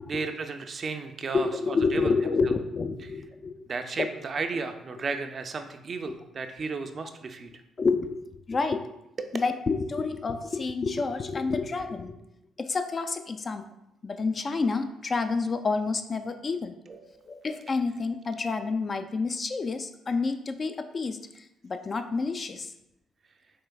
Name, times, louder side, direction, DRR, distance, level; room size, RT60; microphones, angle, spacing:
voice 1, 0.0-2.1 2.5-2.6 3.7-7.5 9.2-9.4 16.9-17.4, right 4 dB, 50° right, 7 dB, 0.4 m, -34 dB
voice 2, 1.3-3.5 4.0-4.1 7.8-8.9 9.3-12.2 12.6-13.7 14.0-16.7 17.3-22.7, left 4 dB, 40° left, 8 dB, 0.3 m, -29 dB
4.4 x 3.0 x 2.3 m, 0.84 s
hypercardioid pair, 50°, 0 cm